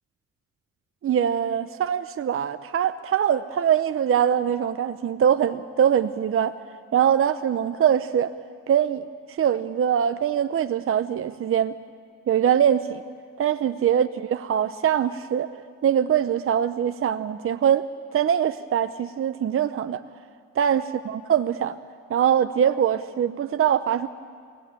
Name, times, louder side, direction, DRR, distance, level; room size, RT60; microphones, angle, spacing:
voice 1, 1.0-6.6 6.9-8.3 8.7-11.8 12.3-13.0 13.4-15.5 15.8-17.8 18.1-20.0 20.6-21.8 22.1-24.1, right 9 dB, 45° right, 11 dB, 0.7 m, -23 dB
25.0 x 18.0 x 8.9 m, 2.2 s
cardioid pair, 90°, 30 cm